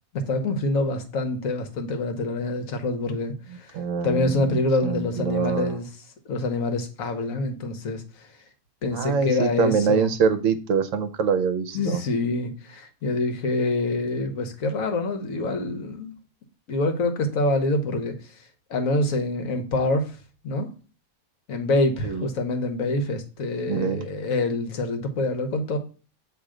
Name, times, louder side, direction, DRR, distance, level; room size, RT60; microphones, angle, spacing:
voice 1, 0.1-3.8 4.0-5.9 6.3-8.3 8.8-10.1 11.7-16.1 16.7-18.2 18.7-20.2 20.4-20.7 21.5-25.8, left 2 dB, 75° left, 6 dB, 1.3 m, -26 dB
voice 2, 3.7-5.8 8.9-12.0 22.0-22.2 23.7-24.1, right 6 dB, 70° right, 10 dB, 1.0 m, -24 dB
7.5 x 3.0 x 4.9 m, 0.37 s
omnidirectional pair, 1.5 m